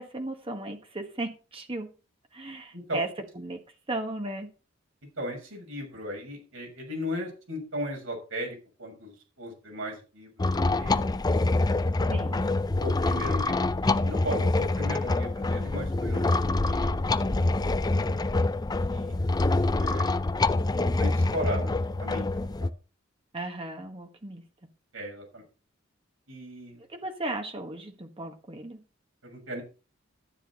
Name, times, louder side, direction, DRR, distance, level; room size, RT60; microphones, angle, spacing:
voice 1, 0.0-1.9 2.3-3.1 3.3-3.6 3.9-4.5 12.1-12.4 23.3-24.4 26.9-28.8, right 2 dB, 30° right, 5 dB, 1.5 m, -35 dB
voice 2, 5.2-10.5 10.8-11.0 12.3-12.5 12.8-17.0 18.9-19.2 19.8-20.0 21.0-22.7 24.9-25.4 26.3-26.8 29.2-29.6, equal, 80° right, 1 dB, 6.5 m, -37 dB
sound 1, 10.4-22.7, left 2 dB, 20° left, 0.5 m, -26 dB
12.5 x 9.9 x 4.2 m, 0.34 s
head